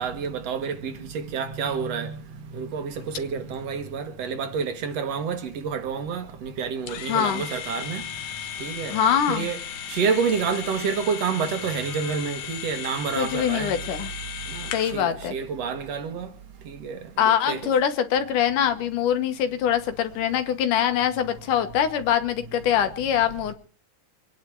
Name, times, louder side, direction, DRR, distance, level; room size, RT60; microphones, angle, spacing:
voice 1, 0.0-2.2 2.5-8.0 8.6-9.0 9.3-9.6 9.9-13.8 14.5-14.7 14.9-16.3 16.7-17.6, right 6 dB, 60° right, 2.3 m, -28 dB
sound 1, 6.9-15.0, left 9 dB, 70° left, 2.2 m, -36 dB
voice 2, 7.1-7.4 8.9-9.5 13.1-14.1 14.7-15.3 17.2-23.5, left 9 dB, 90° left, 2.9 m, -23 dB
24.5 x 10.0 x 4.7 m
omnidirectional pair, 3.5 m